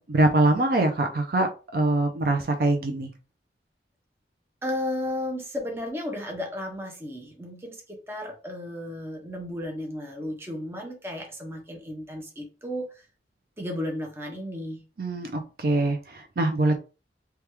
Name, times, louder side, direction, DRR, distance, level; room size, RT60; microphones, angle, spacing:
voice 1, 0.0-3.1 15.0-16.8, right 2 dB, 55° right, 0.5 m, -23 dB
voice 2, 4.6-13.0 13.6-14.8, left 1 dB, 15° right, 0.7 m, -34 dB
3.3 x 2.3 x 3.0 m
head